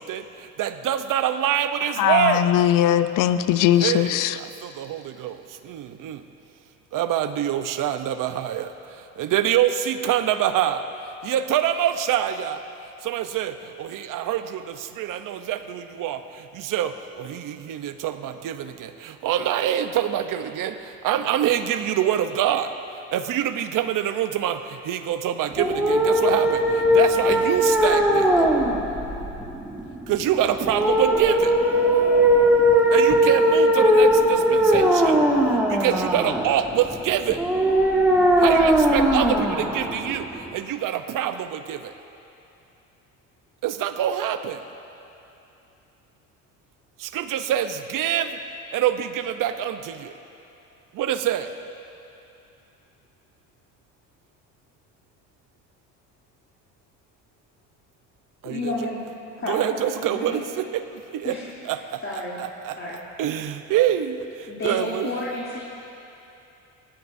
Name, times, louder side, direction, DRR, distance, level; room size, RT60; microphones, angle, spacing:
voice 1, 0.0-2.5 3.8-6.2 6.9-10.8 11.2-12.6 13.0-22.7 23.1-28.5 30.1-31.5 32.9-35.2 35.7-37.4 38.4-41.9 43.6-44.6 47.0-48.4 48.7-50.1 50.9-51.5 58.4-58.7 59.5-61.4 61.6-62.0 62.4-62.8 63.2-65.1, right 10 dB, 60° right, 0.8 m, -25 dB
voice 2, 2.0-4.4, left 11 dB, 65° left, 0.7 m, -20 dB
sound 1, 25.5-40.5, equal, 5° right, 2.1 m, -20 dB
voice 3, 58.4-59.0 59.4-60.4 61.2-61.5 62.0-62.4 62.8-63.0 64.5-65.6, left 2 dB, 35° left, 3.1 m, -31 dB
19.5 x 16.0 x 2.7 m
supercardioid pair, 85°, 36 cm